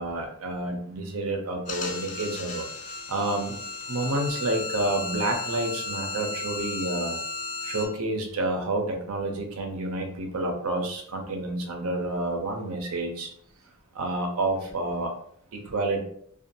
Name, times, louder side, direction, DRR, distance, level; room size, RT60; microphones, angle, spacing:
voice 1, 0.0-2.7 3.1-3.6 3.9-7.2 7.6-13.3 13.9-15.1 15.5-16.0, right 2 dB, 80° right, 3 dB, 0.6 m, -29 dB
sound 1, 1.7-7.9, left 3 dB, 40° left, 0.5 m, -34 dB
2.6 x 2.4 x 2.7 m, 0.63 s
head